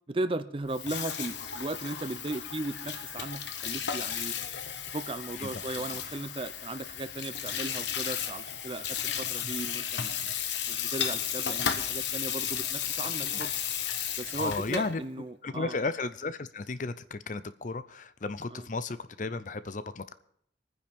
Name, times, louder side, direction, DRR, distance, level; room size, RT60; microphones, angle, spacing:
voice 1, 0.1-4.3 4.9-10.2 10.7-13.5 14.2-15.8 18.5-18.7, right 2 dB, 30° right, 12 dB, 0.5 m, -36 dB
Water tap faucet / Sink (filling or washing), 0.6-15.0, left 8 dB, 75° left, 1.1 m, -34 dB
voice 2, 14.4-15.0 15.4-20.1, left 3 dB, 45° left, 14 dB, 0.6 m, -34 dB
25.5 x 9.7 x 3.6 m, 0.67 s
head